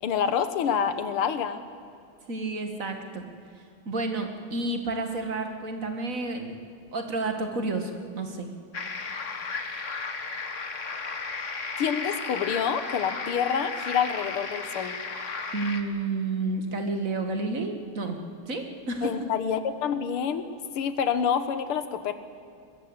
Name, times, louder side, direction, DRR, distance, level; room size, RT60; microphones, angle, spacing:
voice 1, 0.0-1.6 11.8-15.0 19.0-20.5 20.8-22.1, left 7 dB, 85° left, 11 dB, 2.2 m, -27 dB
voice 2, 2.3-3.3 3.8-6.6 6.9-8.5 15.5-18.2 18.5-19.1, right 3 dB, 40° right, 5 dB, 2.3 m, -30 dB
sound 1, 8.7-15.8, left 4 dB, 40° left, 1.7 m, -34 dB
22.0 x 21.0 x 8.2 m, 2.4 s
omnidirectional pair, 2.3 m